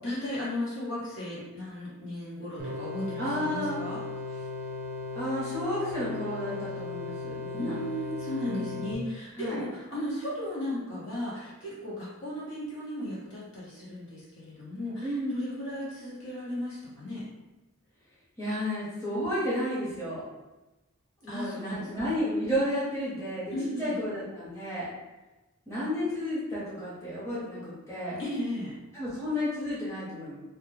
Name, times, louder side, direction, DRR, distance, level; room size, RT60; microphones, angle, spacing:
voice 1, 0.0-4.0 7.5-17.2 21.3-21.9 23.5-24.0 28.2-28.8, left 1 dB, 60° left, -7 dB, 0.9 m, -35 dB
sound 1, 2.6-8.9, left 3 dB, 40° right, 0.3 m, -37 dB
voice 2, 3.2-3.8 5.1-7.7 8.5-8.8 9.4-9.6 15.0-15.3 18.4-20.2 21.2-23.5 23.8-24.9 25.7-28.2 28.9-30.4, equal, 15° left, -10 dB, 0.8 m, -32 dB
2.2 x 2.2 x 3.1 m, 1.1 s
head